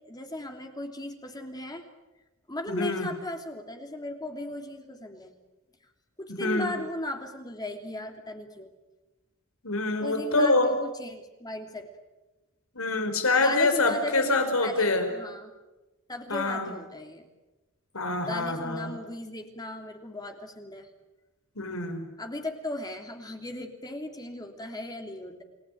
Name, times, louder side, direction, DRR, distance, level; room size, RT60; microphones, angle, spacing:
voice 1, 0.1-1.9 2.5-5.3 6.2-8.7 10.0-11.9 13.4-15.5 16.1-17.3 18.2-20.9 22.2-25.4, left 1 dB, 20° left, 4 dB, 3.0 m, -37 dB
voice 2, 2.7-3.1 6.3-6.7 9.6-10.7 12.8-15.1 16.3-16.7 17.9-18.9 21.6-22.0, left 2 dB, 85° left, 7 dB, 5.2 m, -25 dB
29.5 x 19.5 x 9.3 m, 1.1 s
head